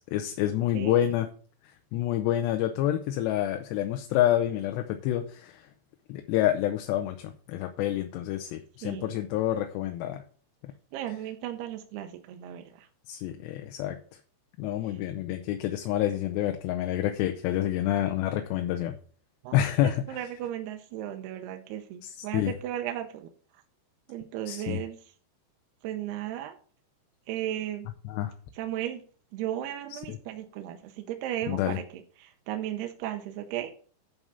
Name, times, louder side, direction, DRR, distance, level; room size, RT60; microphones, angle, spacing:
voice 1, 0.1-1.3 1.9-5.7 6.1-10.2 13.1-14.0 14.6-19.0 19.5-20.2 22.0-22.5 24.5-24.8 28.1-28.3 30.1-30.2 31.5-31.8, left 12 dB, 80° left, 6 dB, 2.8 m, -28 dB
voice 2, 8.8-9.2 10.9-12.9 14.9-15.0 19.4-19.5 19.8-23.3 24.1-25.0 25.8-26.6 27.3-27.9 28.5-29.0 29.3-33.7, right 12 dB, 75° right, 5 dB, 2.6 m, -35 dB
11.0 x 4.8 x 5.5 m, 0.43 s
omnidirectional pair, 5.2 m